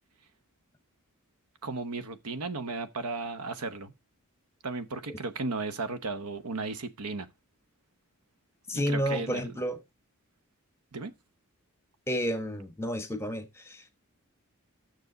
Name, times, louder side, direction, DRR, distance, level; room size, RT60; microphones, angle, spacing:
voice 1, 1.6-3.9 4.6-7.3 8.7-9.6 10.9-11.1, right 3 dB, 90° right, 1.0 m, -35 dB
voice 2, 8.7-9.8 12.1-13.4 13.7-13.8, equal, 10° left, 1.1 m, -30 dB
9.4 x 6.5 x 3.9 m
head